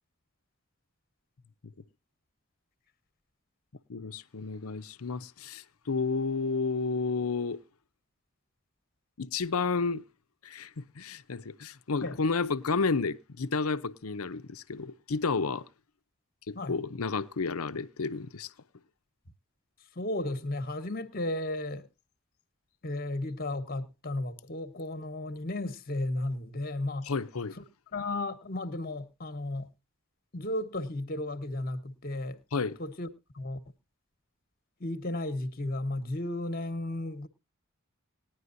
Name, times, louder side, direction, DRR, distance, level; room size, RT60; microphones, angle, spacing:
voice 1, 3.9-7.6 9.2-10.0 10.4-15.7 16.5-18.5 27.0-27.6 32.5-32.8, left 4 dB, 90° left, 0.7 m, -31 dB
voice 2, 19.9-21.9 22.8-27.1 27.5-27.6 27.9-29.7 30.3-32.4 32.8-33.1 33.3-33.6 34.8-37.3, left 1 dB, 45° left, 1.2 m, -34 dB
19.5 x 10.5 x 2.6 m
head